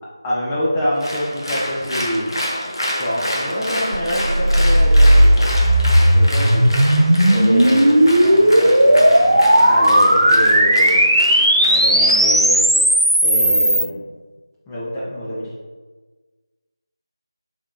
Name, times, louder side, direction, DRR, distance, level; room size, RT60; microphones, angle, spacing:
voice 1, 0.2-2.3 2.8-5.5 6.1-6.8 7.3-11.1 11.6-12.6 13.2-14.0 14.7-15.5, equal, 5° left, -8 dB, 0.3 m, -25 dB
Applause, 1.0-12.6, equal, 60° left, 0.8 m, -28 dB
sound 1, 3.9-13.8, equal, 75° right, 0.7 m, -14 dB
4.5 x 3.3 x 2.5 m, 1.3 s
figure-of-eight pair, 165°, 3 cm